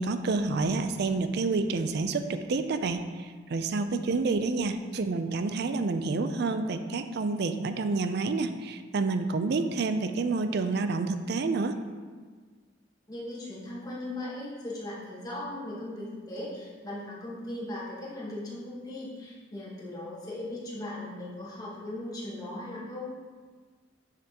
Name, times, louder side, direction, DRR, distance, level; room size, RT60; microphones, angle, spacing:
voice 1, 0.0-11.8, right 3 dB, 60° right, 9 dB, 0.4 m, -29 dB
voice 2, 13.1-23.1, left 1 dB, 20° left, -7 dB, 1.4 m, -38 dB
6.6 x 6.1 x 2.9 m, 1.5 s
head